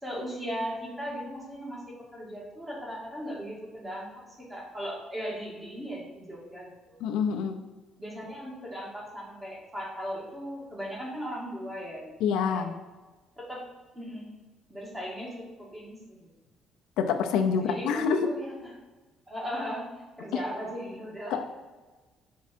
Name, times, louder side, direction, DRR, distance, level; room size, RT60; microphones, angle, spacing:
voice 1, 0.0-4.1 4.5-7.0 8.0-12.1 12.5-12.7 13.4-13.6 13.9-14.3 14.7-16.3 17.6-18.5 19.3-19.9 20.2-21.4, equal, 10° right, -3 dB, 1.9 m, -37 dB
voice 2, 7.0-7.6 12.2-12.8 17.0-18.3 20.3-20.4 21.3-21.4, left 6 dB, 90° left, 5 dB, 0.7 m, -26 dB
6.1 x 4.7 x 4.4 m, 1.3 s
cardioid pair, 155°, 0 cm